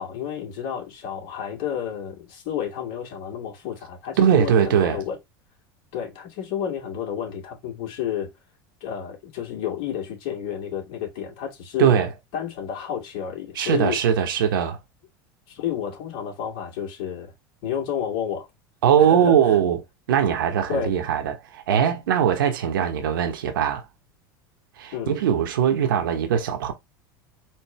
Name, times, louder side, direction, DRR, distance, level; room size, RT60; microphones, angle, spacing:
voice 1, 0.0-5.2 5.9-8.3 8.8-12.0 12.3-14.0 15.5-17.3 17.6-18.5 19.0-19.6 20.7-20.9 24.9-25.2, left 9 dB, 65° left, 2.1 m, -30 dB
voice 2, 4.2-5.0 11.8-12.1 13.5-14.8 18.8-19.8 20.1-23.8 24.8-26.7, right 8 dB, 85° right, 1.0 m, -21 dB
4.5 x 2.8 x 3.2 m
supercardioid pair, 105°, 11 cm